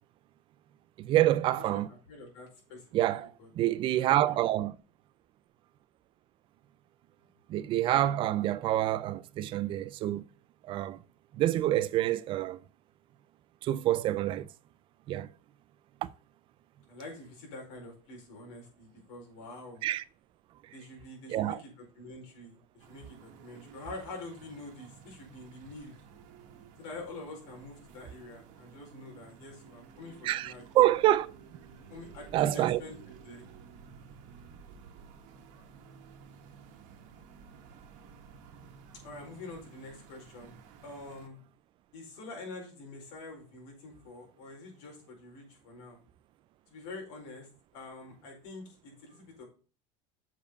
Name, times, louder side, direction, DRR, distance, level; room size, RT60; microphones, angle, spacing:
voice 1, 1.0-1.9 2.9-3.3 3.6-4.8 7.5-10.2 10.7-11.0 11.3-12.6 13.6-14.5 15.1-15.3 16.0-16.1 19.8-20.0 21.3-21.6 30.2-31.3 32.3-32.8, right 13 dB, 35° right, 0.4 m, -27 dB
voice 2, 1.5-2.8 3.1-3.5 4.0-4.5 16.9-19.8 20.7-26.0 26.8-30.6 31.9-33.5 39.0-40.5 40.8-41.4 41.9-46.0 46.7-49.4, left 2 dB, 75° left, 4.6 m, -46 dB
sound 1, 22.8-41.3, right 6 dB, 55° right, 1.7 m, -53 dB
7.0 x 4.9 x 6.4 m
cardioid pair, 160°, 15 cm